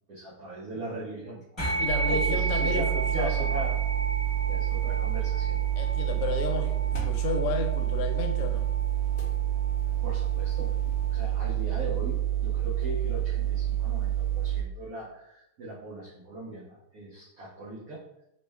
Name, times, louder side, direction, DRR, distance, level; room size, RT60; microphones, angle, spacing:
voice 1, 0.1-1.6 2.1-3.8 4.5-5.9 10.0-10.7 11.1-18.0, right 1 dB, 85° right, -6 dB, 0.8 m, -39 dB
sound 1, 1.6-11.3, right 2 dB, 25° left, 0.6 m, -35 dB
voice 2, 1.8-3.5 5.8-8.7, left 5 dB, 85° left, 5 dB, 1.5 m, -33 dB
sound 2, 1.9-14.6, right 12 dB, 65° left, 0.9 m, -28 dB
3.5 x 2.1 x 3.3 m, 0.82 s
omnidirectional pair, 2.4 m